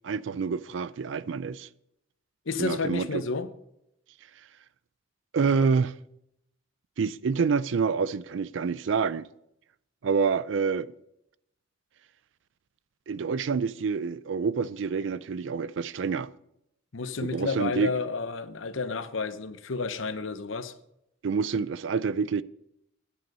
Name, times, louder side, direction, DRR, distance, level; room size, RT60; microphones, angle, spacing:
voice 1, 0.0-1.7 2.6-3.1 5.3-5.9 7.0-9.3 10.0-10.9 13.1-16.3 17.2-17.9 21.2-22.4, right 5 dB, 70° right, 0.4 m, -27 dB
voice 2, 2.5-3.5 16.9-20.7, left 4 dB, 75° left, 0.8 m, -31 dB
10.0 x 9.2 x 5.4 m
head